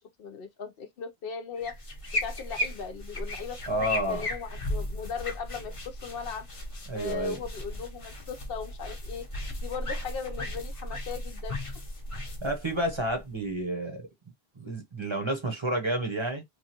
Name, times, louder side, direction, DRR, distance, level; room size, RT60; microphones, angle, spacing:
voice 1, 0.2-1.8 2.2-6.5 6.9-9.3 9.6-11.6, left 6 dB, 70° left, 0.8 m, -38 dB
sound 1, 1.6-13.5, left 1 dB, 35° left, 0.8 m, -36 dB
voice 2, 3.7-4.3 6.9-7.4 12.4-14.1 14.6-16.4, right 1 dB, 30° right, 0.8 m, -30 dB
3.0 x 2.4 x 2.8 m
omnidirectional pair, 1.0 m